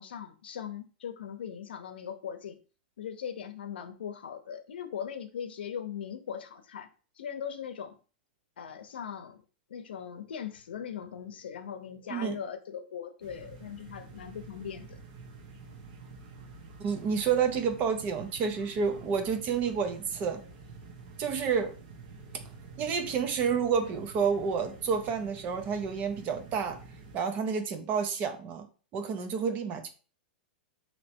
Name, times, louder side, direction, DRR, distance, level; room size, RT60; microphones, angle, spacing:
voice 1, 0.0-2.6 3.0-8.0 8.6-9.4 9.7-15.0, left 8 dB, 85° left, 0.7 m, -40 dB
sound 1, 13.2-27.2, right 4 dB, 55° right, 0.9 m, -49 dB
voice 2, 16.8-20.4 21.2-21.8 22.8-26.8 27.1-28.7 28.9-29.9, right 6 dB, 30° right, 0.6 m, -29 dB
3.1 x 2.9 x 4.4 m
hypercardioid pair, 150°, 5 cm